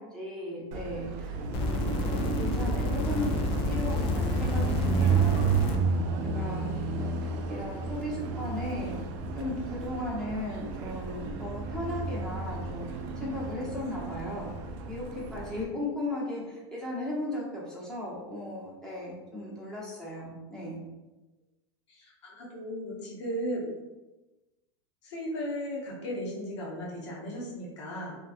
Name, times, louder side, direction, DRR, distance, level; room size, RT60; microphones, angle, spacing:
voice 1, 0.0-3.4 3.6-5.4 5.7-5.8 6.3-9.0 9.3-14.5 14.9-20.8, left 1 dB, 5° left, -6 dB, 0.8 m, -36 dB
Car passing by, 0.7-15.6, right 4 dB, 55° right, 0.4 m, -32 dB
sound 1, 1.5-5.8 6.7-6.8, left 2 dB, 40° left, 0.4 m, -30 dB
voice 2, 21.9-23.7 25.0-28.2, equal, 80° left, -4 dB, 0.9 m, -36 dB
2.5 x 2.3 x 2.4 m, 1.1 s
hypercardioid pair, 115°, 15 cm